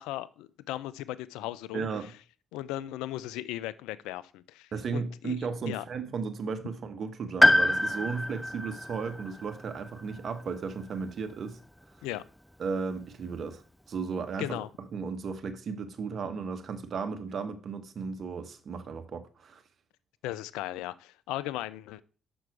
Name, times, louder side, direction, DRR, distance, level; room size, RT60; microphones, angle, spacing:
voice 1, 0.0-1.9 2.5-5.4 5.7-5.8 12.0-12.2 14.4-14.7 20.2-22.0, left 14 dB, 80° left, 0.3 m, -37 dB
voice 2, 1.7-2.1 4.7-11.6 12.6-14.6 14.9-19.6, right 5 dB, 55° right, 1.0 m, -35 dB
Piano, 7.4-11.6 12.8-12.9, left 1 dB, 5° left, 0.4 m, -26 dB
6.2 x 6.0 x 4.7 m
hypercardioid pair, 50°, 0 cm